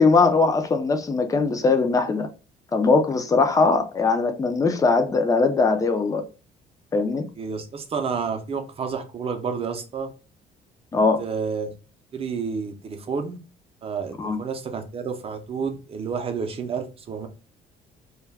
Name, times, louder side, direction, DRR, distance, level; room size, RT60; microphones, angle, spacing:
voice 1, 0.0-2.3 2.7-6.2 6.9-7.3 10.9-11.2 14.2-14.4, left 4 dB, 20° left, 0.4 m, -20 dB
voice 2, 7.4-10.1 11.2-11.7 12.1-13.4 13.8-17.3, right 5 dB, 35° right, 0.6 m, -30 dB
2.3 x 2.1 x 3.3 m
cardioid pair, 110°, 17 cm